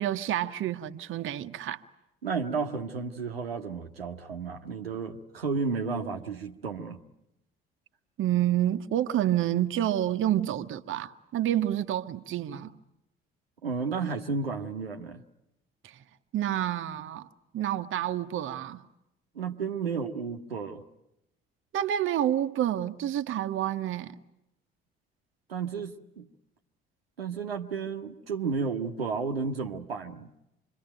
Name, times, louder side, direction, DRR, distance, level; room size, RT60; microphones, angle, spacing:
voice 1, 0.0-1.8 8.2-12.7 15.8-15.9 16.3-17.3 17.5-18.8 21.7-24.1, right 12 dB, 45° right, 0.9 m, -28 dB
voice 2, 2.2-7.0 13.6-15.2 19.3-20.8 25.5-26.3 27.2-30.3, right 5 dB, 85° right, 1.0 m, -32 dB
26.5 x 22.5 x 9.0 m
figure-of-eight pair, 50°, 29 cm